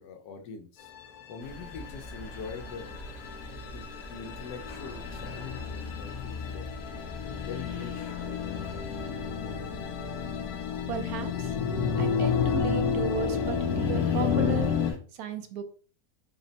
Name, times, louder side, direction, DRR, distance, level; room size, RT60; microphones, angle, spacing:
voice 1, 0.0-3.0 3.7-6.7 7.3-8.4, left 5 dB, 90° left, 5 dB, 1.3 m, -44 dB
sound 1, 0.9-14.9, left 7 dB, 70° left, 1.1 m, -31 dB
sound 2, 1.4-15.0, left 1 dB, 45° left, 1.0 m, -45 dB
voice 2, 10.9-11.5 12.0-15.6, right 7 dB, 70° right, 7 dB, 1.1 m, -35 dB
4.3 x 2.1 x 3.9 m, 0.40 s
omnidirectional pair, 1.7 m